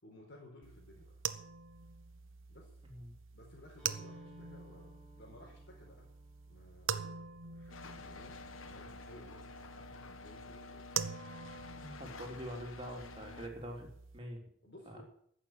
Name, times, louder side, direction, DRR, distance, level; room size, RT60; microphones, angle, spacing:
voice 1, 0.0-1.1 2.5-2.7 3.3-6.0 6.5-10.9 11.7-12.4 14.6-15.0, left 1 dB, 55° left, 0 dB, 4.2 m, -57 dB
sound 1, 0.6-14.2, right 8 dB, 75° right, 0.9 m, -45 dB
voice 2, 2.8-3.1 11.7-14.4 14.8-15.0, equal, 25° right, 0 dB, 3.3 m, -45 dB
Acoustic guitar, 3.8-7.6, right 1 dB, 5° left, 5.9 m, -61 dB
sound 2, 7.7-13.5, left 4 dB, 80° left, 1.3 m, -50 dB
15.0 x 6.7 x 9.4 m, 0.65 s
head